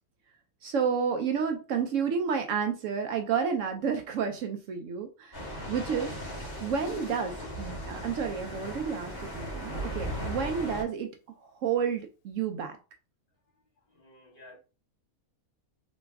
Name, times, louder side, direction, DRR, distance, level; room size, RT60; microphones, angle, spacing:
voice 1, 0.6-5.4 5.7-6.1 6.6-11.1 11.4-12.8, right 6 dB, 70° right, 0.9 m, -30 dB
sound 1, 5.3-10.8, equal, 15° left, 2.0 m, -37 dB
Guitar, 6.7-10.7, left 8 dB, 90° left, 1.1 m, -50 dB
voice 2, 13.9-14.6, left 2 dB, 35° left, 1.9 m, -53 dB
3.3 x 3.0 x 3.4 m
omnidirectional pair, 1.5 m